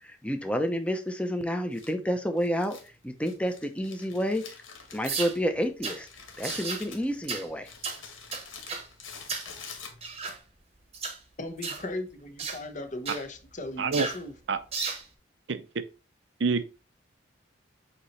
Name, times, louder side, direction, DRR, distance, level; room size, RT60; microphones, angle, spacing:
voice 1, 0.0-2.8 3.0-4.4 4.9-6.1 6.4-7.7, equal, 5° left, 0.7 m, -29 dB
Crumpling crinkling, 1.7-10.3, left 5 dB, 85° left, 2.0 m, -47 dB
sound 1, 5.0-5.4 5.8-6.0 6.4-6.8 7.3-7.5 7.8-8.0 8.3-8.9 9.3-9.5 10.0-10.4 10.9-11.2 11.6-11.8 12.4-12.6 13.0-13.2 13.9-14.2 14.7-15.0, right 5 dB, 30° right, 1.0 m, -34 dB
voice 2, 11.4-14.4, left 1 dB, 40° left, 0.9 m, -37 dB
voice 3, 13.8-14.1 14.5-14.6 15.5-15.6 16.4-16.6, right 4 dB, 65° right, 0.6 m, -26 dB
8.1 x 3.0 x 4.2 m
head